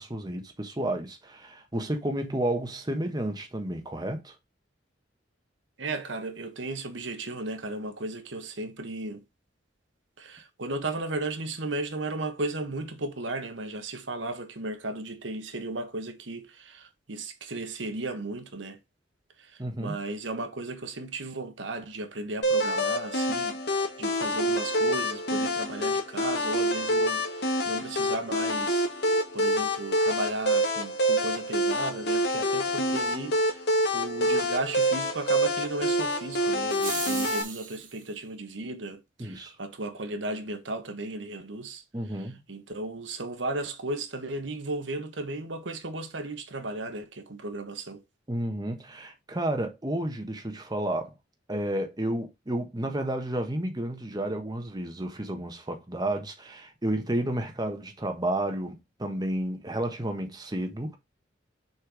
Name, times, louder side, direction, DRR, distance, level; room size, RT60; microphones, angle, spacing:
voice 1, 0.0-4.3 19.6-19.9 39.2-39.5 41.9-42.4 48.3-51.1 51.5-61.0, right 1 dB, 20° right, 1.3 m, -31 dB
voice 2, 5.8-9.2 10.2-18.8 19.4-33.6 33.9-41.8 42.1-48.0, right 2 dB, 75° right, 1.3 m, -35 dB
sound 1, 22.4-37.4, equal, 60° left, 2.1 m, -27 dB
sound 2, 36.7-38.0, right 6 dB, 45° right, 1.8 m, -36 dB
6.4 x 4.5 x 4.9 m
head